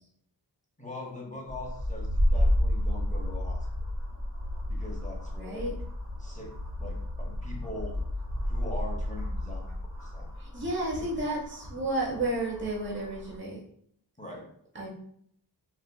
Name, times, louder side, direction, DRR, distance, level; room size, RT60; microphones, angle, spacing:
voice 1, 0.8-3.7 4.7-5.7 6.2-8.0 8.5-10.3 14.2-14.5 14.8-14.9, left 2 dB, 15° left, -2 dB, 0.7 m, -42 dB
sound 1, 1.5-13.4, left 1 dB, 45° right, 1.1 m, -31 dB
voice 2, 5.4-5.7 10.4-13.6 14.7-14.9, right 1 dB, 25° right, -3 dB, 0.9 m, -32 dB
4.2 x 2.5 x 2.2 m, 0.66 s
wide cardioid pair, 70°, 44 cm